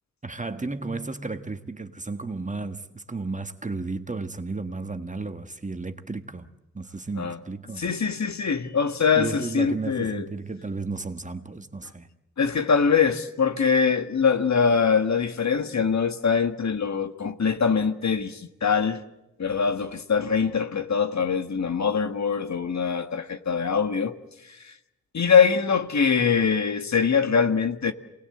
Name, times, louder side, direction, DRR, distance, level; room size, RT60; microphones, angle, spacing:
voice 1, 0.2-6.5 6.7-7.8 9.1-12.1, right 3 dB, 25° right, 1.6 m, -33 dB
voice 2, 7.8-10.3 12.4-19.0 19.4-24.1 24.6-24.7 25.1-27.9, left 6 dB, 60° left, 1.6 m, -23 dB
28.0 x 19.5 x 7.9 m
wide cardioid pair, 90°, 31 cm